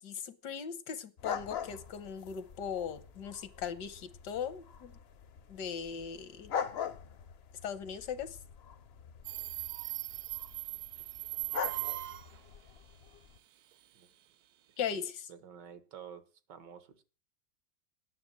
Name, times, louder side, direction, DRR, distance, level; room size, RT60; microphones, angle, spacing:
voice 1, 0.0-4.9 5.5-6.5 7.6-8.4 14.8-15.3, left 7 dB, 75° left, 13 dB, 1.6 m, -39 dB
sound 1, 1.2-13.4, left 7 dB, 55° left, 0.7 m, -43 dB
Subway metro underground, 9.2-12.4, right 19 dB, 70° right, 1.2 m, -39 dB
voice 2, 15.3-16.2 16.5-17.0, right 8 dB, 85° right, 12 dB, 1.9 m, -50 dB
9.7 x 7.0 x 8.7 m, 0.36 s
omnidirectional pair, 1.8 m